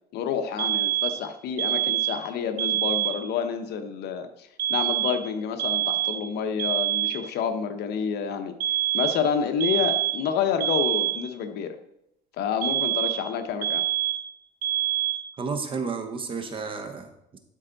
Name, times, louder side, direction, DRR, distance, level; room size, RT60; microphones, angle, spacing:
voice 1, 0.1-8.5 8.9-11.8 12.4-13.8, left 7 dB, 65° left, 7 dB, 0.9 m, -28 dB
sound 1, 0.6-1.2 1.6-2.3 2.6-3.2 4.6-5.3 5.6-6.3 6.6-7.3 8.6-9.3 9.6-10.3 10.6-11.3 12.6-13.3 13.6-14.3 14.6-15.3, right 13 dB, 55° right, 0.6 m, -26 dB
voice 2, 15.4-17.4, right 5 dB, 30° right, 7 dB, 0.9 m, -32 dB
12.5 x 4.4 x 3.9 m, 0.82 s
cardioid pair, 145°, 18 cm